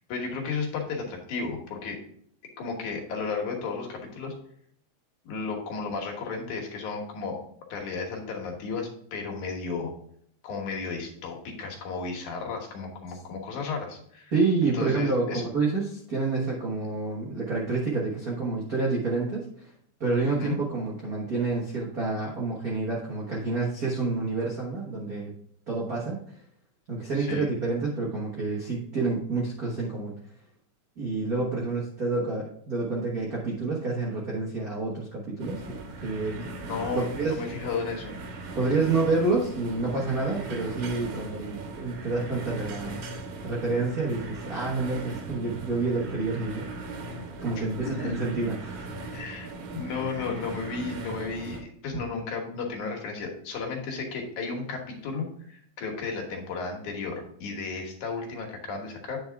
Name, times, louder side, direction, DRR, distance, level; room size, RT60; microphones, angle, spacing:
voice 1, 0.0-2.0 2.6-4.3 5.2-7.4 7.7-9.9 10.4-14.3 14.7-15.4 20.3-20.6 27.2-27.5 36.7-38.1 48.0-48.1 49.1-59.2, left 4 dB, 80° left, 1 dB, 2.8 m, -33 dB
voice 2, 14.3-19.7 20.0-25.3 25.7-26.4 26.9-30.1 31.0-36.5 36.9-37.4 38.5-43.0 43.4-46.7 47.1-49.0, right 3 dB, 45° right, -5 dB, 1.2 m, -28 dB
sound 1, 35.4-51.6, right 2 dB, 80° right, 2.5 m, -39 dB
9.4 x 4.7 x 3.5 m, 0.65 s
omnidirectional pair, 3.5 m